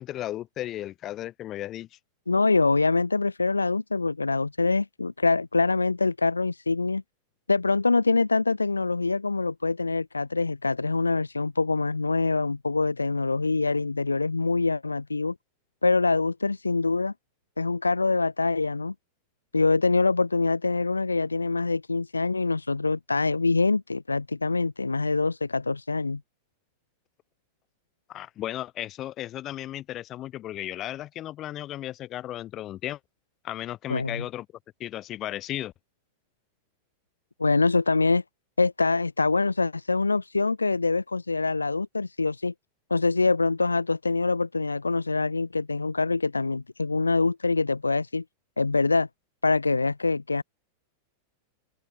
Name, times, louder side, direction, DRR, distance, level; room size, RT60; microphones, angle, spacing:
voice 1, 0.0-1.9 28.1-33.0 33.4-34.5 34.8-35.7, left 13 dB, 35° left, 3.7 m, -35 dB
voice 2, 2.3-7.0 7.5-15.3 15.8-17.1 17.6-18.9 19.5-26.2 33.9-34.2 37.4-38.2 38.6-42.5 42.9-48.2 48.6-49.1 49.4-50.4, left 3 dB, 80° left, 0.6 m, -24 dB
open air
figure-of-eight pair, 90°, 0 cm